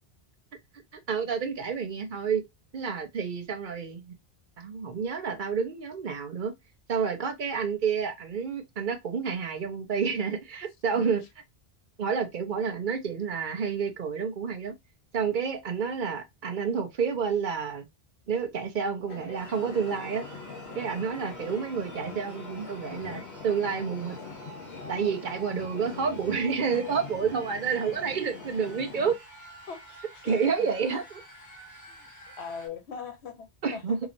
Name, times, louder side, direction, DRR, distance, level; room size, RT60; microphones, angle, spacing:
voice 1, 0.9-2.4 2.7-4.1 4.6-6.5 6.9-11.2 12.0-14.7 15.1-17.9 18.3-20.3 20.7-24.2 24.9-29.2 30.2-31.2 33.6-34.0, right 6 dB, 55° right, 0.7 m, -29 dB
sound 1, 19.1-29.2, left 4 dB, 60° left, 0.9 m, -43 dB
sound 2, 19.3-32.7, right 1 dB, 20° left, 1.2 m, -49 dB
voice 2, 29.7-30.7 31.9-34.0, left 6 dB, 85° left, 1.1 m, -41 dB
4.0 x 2.9 x 2.5 m
omnidirectional pair, 1.1 m